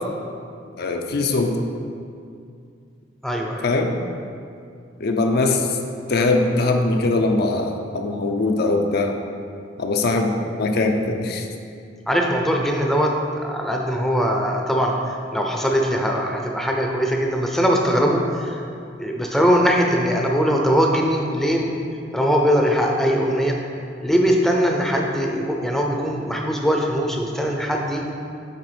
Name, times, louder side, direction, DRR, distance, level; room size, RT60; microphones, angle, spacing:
voice 1, 0.8-1.6 3.6-3.9 5.0-5.7 6.1-9.2 9.8-11.5, left 2 dB, 55° left, 3 dB, 0.5 m, -21 dB
voice 2, 3.2-3.7 12.1-18.6 19.0-21.7 22.1-23.6 24.0-28.1, equal, ahead, 0 dB, 0.6 m, -21 dB
8.7 x 3.5 x 5.0 m, 2.4 s
head